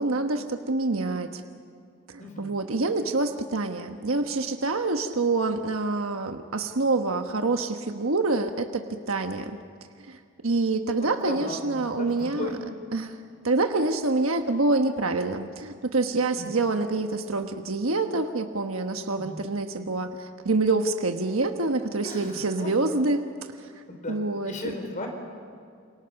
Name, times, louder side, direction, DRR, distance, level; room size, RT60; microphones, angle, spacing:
voice 1, 0.0-1.4 2.1-9.5 10.0-12.5 12.9-13.2 13.4-23.2 23.6-23.8 24.1-24.7, right 3 dB, 90° right, 5 dB, 1.3 m, -26 dB
voice 2, 2.2-2.5 11.0-12.6 13.0-13.1 16.4-16.5 19.2-19.4 22.0-22.9 23.9-24.2 24.4-25.1, left 2 dB, 40° left, 3 dB, 4.2 m, -36 dB
29.5 x 28.0 x 5.9 m, 2.3 s
head